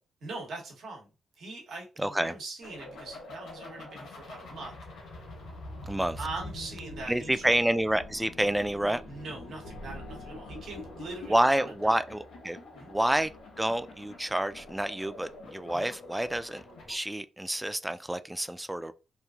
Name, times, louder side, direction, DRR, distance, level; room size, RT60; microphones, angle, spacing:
voice 1, 0.2-1.1 1.3-4.8 6.2-7.5 9.1-12.0 12.7-12.9 15.7-15.9, right 3 dB, 70° right, 1.0 m, -42 dB
voice 2, 2.0-2.3 5.8-6.2 7.1-9.0 11.3-12.6 12.9-13.3 13.6-16.6 16.9-18.9, right 1 dB, 10° right, 0.3 m, -28 dB
sound 1, 2.6-16.9, left 2 dB, 80° left, 1.1 m, -45 dB
3.0 x 2.4 x 2.3 m
supercardioid pair, 50°, 0 cm